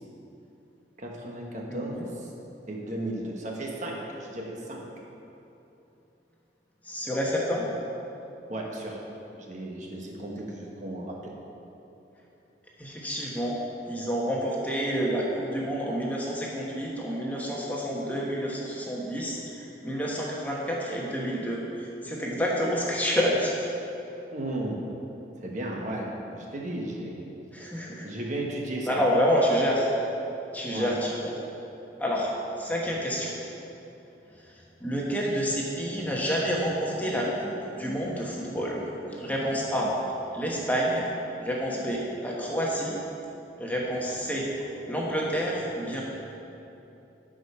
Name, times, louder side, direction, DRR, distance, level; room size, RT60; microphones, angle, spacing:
voice 1, 1.0-2.3 2.7-4.9 8.5-9.1 9.4-11.3 24.3-24.8 25.4-27.2 28.0-29.0 30.7-30.9, right 1 dB, 45° right, -1 dB, 1.2 m, -35 dB
voice 2, 1.7-2.1 6.8-7.7 12.8-23.6 27.5-28.1 28.9-29.9 30.5-31.3 32.0-32.3 32.6-33.3 34.8-39.9 40.3-41.1 41.4-42.9 43.6-44.5 44.7-46.0, equal, 10° left, -3 dB, 1.2 m, -28 dB
12.5 x 5.2 x 5.6 m, 2.9 s
head